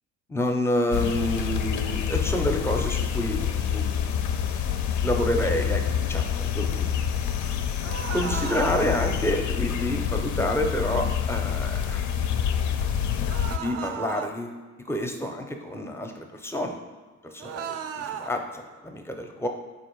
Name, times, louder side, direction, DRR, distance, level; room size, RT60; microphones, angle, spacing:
voice 1, 0.3-4.0 5.0-7.0 8.1-12.0 13.5-14.6 14.9-16.8 17.3-19.5, left 1 dB, 10° left, 4 dB, 0.5 m, -28 dB
sound 1, 0.9-13.6, left 8 dB, 75° left, 0.4 m, -27 dB
sound 2, 7.8-8.8 13.3-14.3 17.4-18.3, right 8 dB, 55° right, 0.4 m, -35 dB
4.4 x 2.5 x 4.5 m, 1.4 s
cardioid pair, 90°, 30 cm